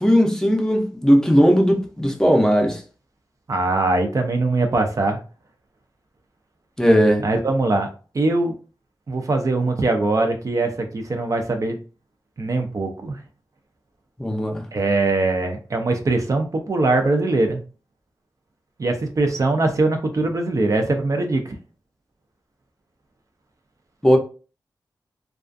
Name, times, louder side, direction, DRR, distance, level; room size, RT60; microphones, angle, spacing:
voice 1, 0.0-2.8 6.8-7.2 14.2-14.7 24.0-24.2, equal, 10° left, 0.5 m, -17 dB
voice 2, 3.5-5.2 7.2-7.9 8.1-8.5 9.1-11.8 12.4-13.2 14.7-17.6 18.8-21.5, right 2 dB, 50° right, 0.4 m, -21 dB
2.4 x 2.3 x 2.5 m
wide cardioid pair, 80°, 7 cm